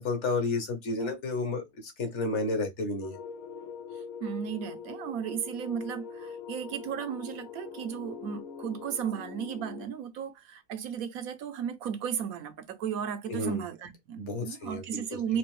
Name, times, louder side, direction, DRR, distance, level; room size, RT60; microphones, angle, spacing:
voice 1, 0.0-3.2 13.3-13.6 14.2-15.0, left 2 dB, 60° left, 1.4 m, -31 dB
sound 1, 3.0-9.9, left 6 dB, 85° left, 1.1 m, -43 dB
voice 2, 3.9-15.4, right 8 dB, 90° right, 1.2 m, -35 dB
4.2 x 2.6 x 3.1 m
omnidirectional pair, 1.4 m